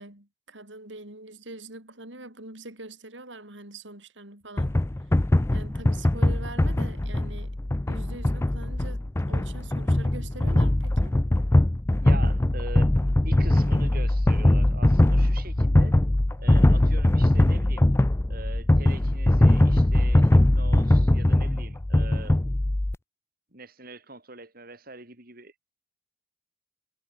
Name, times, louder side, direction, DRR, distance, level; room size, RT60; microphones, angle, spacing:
voice 1, 0.0-4.8 5.5-7.6 7.9-11.2, right 2 dB, 75° right, 7.4 m, -43 dB
sound 1, 4.6-23.0, left 1 dB, 15° left, 0.4 m, -21 dB
voice 2, 12.0-12.9 13.2-15.9 16.4-17.9 18.3-22.5 23.5-25.5, right 2 dB, 50° right, 7.3 m, -43 dB
head